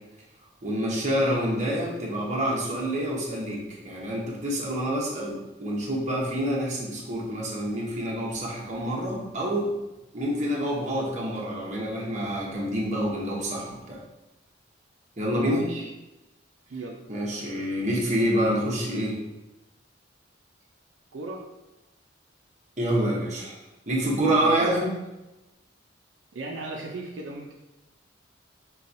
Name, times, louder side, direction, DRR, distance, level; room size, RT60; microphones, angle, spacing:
voice 1, 0.6-9.7 10.1-14.0 15.2-15.6 17.1-19.2 22.8-23.6 23.9-24.9, equal, 40° right, -3 dB, 0.9 m, -27 dB
voice 2, 15.3-15.9 16.7-17.0 21.1-21.4 24.4-24.9 26.3-27.5, right 2 dB, 75° right, -1 dB, 0.5 m, -35 dB
5.5 x 2.3 x 2.6 m, 0.98 s
head